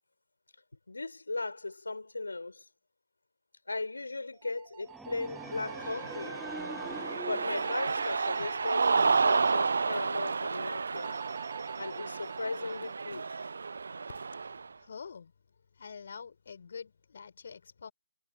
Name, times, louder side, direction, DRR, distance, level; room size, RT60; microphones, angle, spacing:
voice 1, 0.9-2.7 3.7-6.4 7.2-11.1 11.8-13.4, left 3 dB, 65° left, 4.4 m, -37 dB
sound 1, 4.3-6.3 7.6-9.6 11.0-12.9, right 37 dB, 15° right, 5.5 m, -49 dB
sound 2, 4.9-9.0, right 1 dB, ahead, 2.2 m, -45 dB
Cheering, 5.4-14.7, right 4 dB, 55° right, 0.4 m, -31 dB
voice 2, 14.8-15.3 15.7-17.9, left 6 dB, 45° left, 4.3 m, -46 dB
figure-of-eight pair, 145°, 0 cm